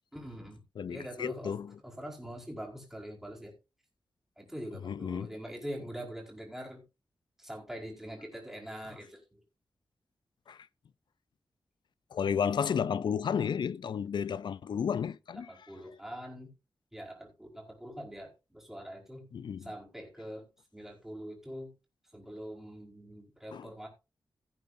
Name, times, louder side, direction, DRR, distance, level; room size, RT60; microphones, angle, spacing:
voice 1, 0.1-0.6 0.9-1.6 1.8-3.5 4.4-6.8 7.4-9.4 15.5-16.5 16.9-19.3 19.6-20.5 20.7-21.7 22.1-23.9, equal, 5° right, 4.8 m, -43 dB
voice 2, 0.8-1.7 4.8-5.3 10.5-10.6 12.1-15.7 19.3-19.7 23.5-23.7, left 7 dB, 90° left, 0.5 m, -32 dB
16.5 x 9.1 x 2.7 m
wide cardioid pair, 145°, 8 cm